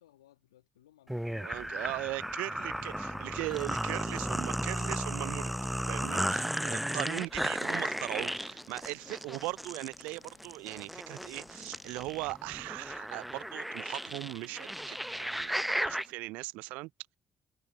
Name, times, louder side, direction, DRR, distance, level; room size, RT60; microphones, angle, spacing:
voice 1, 0.0-3.5, left 13 dB, 80° left, 2.0 m, -63 dB
sound 1, 1.1-16.1, equal, 5° right, 0.6 m, -35 dB
voice 2, 1.4-5.5 5.9-16.9, right 22 dB, 70° right, 0.4 m, -39 dB
sound 2, 5.2-12.7, left 11 dB, 60° left, 1.3 m, -61 dB
figure-of-eight pair, 45°, 3 cm